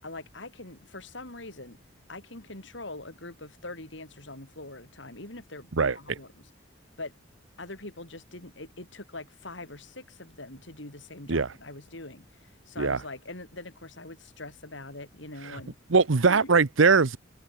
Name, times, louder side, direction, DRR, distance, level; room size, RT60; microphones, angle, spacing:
voice 1, 0.0-1.8 2.1-6.5 7.0-7.1 7.6-15.8 16.2-16.5, left 2 dB, 70° left, 4.7 m, -43 dB
voice 2, 15.9-17.2, right 4 dB, 85° right, 0.9 m, -21 dB
head